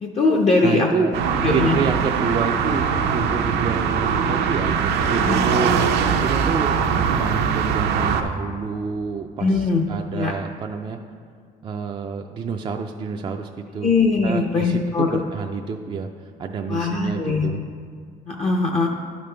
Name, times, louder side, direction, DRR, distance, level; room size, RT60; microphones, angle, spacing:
voice 1, 0.0-0.9 1.4-1.8 5.2-5.4 9.4-9.9 10.1-10.3 13.8-15.2 16.7-17.5 18.3-18.9, left 3 dB, 40° left, 1 dB, 0.6 m, -20 dB
voice 2, 0.6-6.8 7.1-11.0 11.6-13.9 14.2-16.1 16.4-17.6, right 5 dB, 30° right, 3 dB, 0.4 m, -29 dB
sound 1, 1.1-8.2, right 6 dB, 80° right, 0.6 m, -21 dB
11.0 x 5.2 x 3.3 m, 2.1 s
cardioid pair, 110°, 17 cm